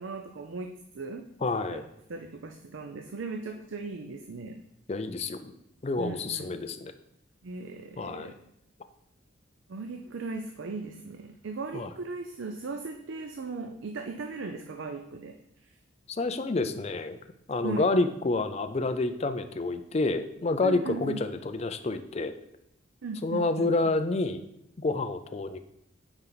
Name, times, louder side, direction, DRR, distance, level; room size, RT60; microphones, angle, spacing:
voice 1, 0.0-1.3 1.7-1.8 2.1-4.6 6.0-6.7 7.4-8.3 9.7-15.4 17.6-17.9 20.6-21.3 23.0-23.7, right 3 dB, 70° right, 5 dB, 0.5 m, -38 dB
voice 2, 1.4-1.8 4.9-5.5 5.8-6.9 8.0-8.3 11.7-11.9 16.1-17.2 17.5-22.3 23.2-24.4 24.8-25.6, left 3 dB, 30° left, 9 dB, 0.4 m, -28 dB
8.9 x 4.4 x 4.0 m, 0.79 s
head